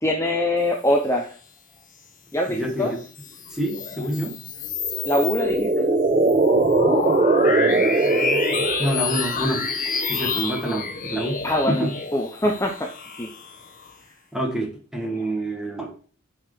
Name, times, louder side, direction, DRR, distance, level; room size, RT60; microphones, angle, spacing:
voice 1, 0.0-1.3 2.3-2.9 5.0-5.8 11.4-12.9 13.2-13.3 15.2-15.3, left 1 dB, 15° left, 2 dB, 0.9 m, -23 dB
voice 2, 2.5-3.0 3.5-4.4 7.5-9.6 10.1-12.0 14.3-16.0, right 1 dB, 5° right, 1 dB, 1.8 m, -28 dB
sound 1, 3.0-13.9, left 4 dB, 40° left, 1.3 m, -29 dB
sound 2, 4.8-9.2, right 3 dB, 30° right, 0.5 m, -20 dB
7.8 x 4.8 x 4.9 m, 0.41 s
head